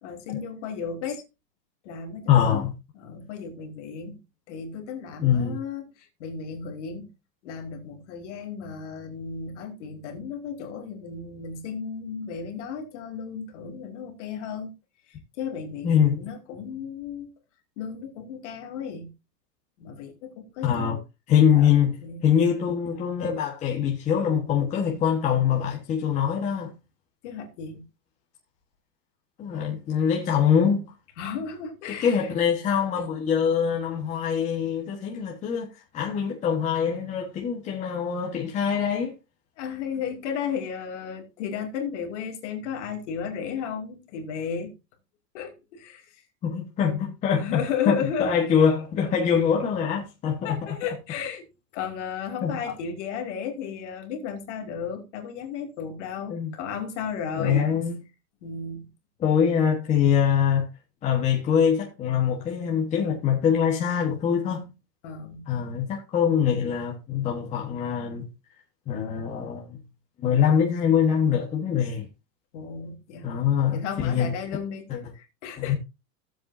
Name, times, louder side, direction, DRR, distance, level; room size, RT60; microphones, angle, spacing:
voice 1, 0.0-1.2 1.8-2.6 3.0-4.2 4.5-7.1 7.4-14.7 15.1-17.3 17.8-19.1 19.8-21.0 21.3-22.3 27.2-27.9 31.2-32.3 39.6-44.7 45.3-46.2 47.3-48.3 50.4-51.5 51.7-57.7 58.4-58.9 65.0-65.5 72.5-73.4 73.7-75.7, left 6 dB, 45° left, 2.6 m, -34 dB
voice 2, 2.3-2.7 5.2-5.6 15.8-16.2 20.6-21.0 21.3-22.0 22.2-26.7 29.4-30.8 31.9-39.1 46.4-50.6 52.4-52.6 56.3-56.5 57.4-58.0 59.2-60.7 61.0-64.7 65.5-68.3 68.9-69.8 70.2-72.1 73.2-74.3 75.6-75.7, left 8 dB, 15° left, 1.3 m, -24 dB
16.0 x 7.7 x 2.7 m
supercardioid pair, 170°, 49 cm